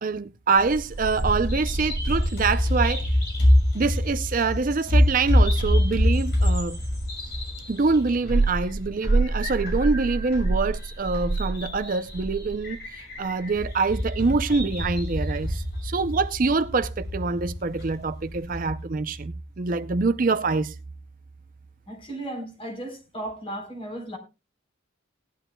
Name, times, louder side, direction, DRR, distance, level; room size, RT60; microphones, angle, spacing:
voice 1, 0.0-3.2 3.7-6.8 7.7-20.8, right 4 dB, 45° right, 0.5 m, -25 dB
Bird vocalization bird call bird song, 0.6-18.7, equal, 55° left, 6.5 m, -25 dB
voice 2, 21.9-24.2, right 1 dB, 30° left, 3.7 m, -35 dB
18.5 x 11.5 x 2.2 m
head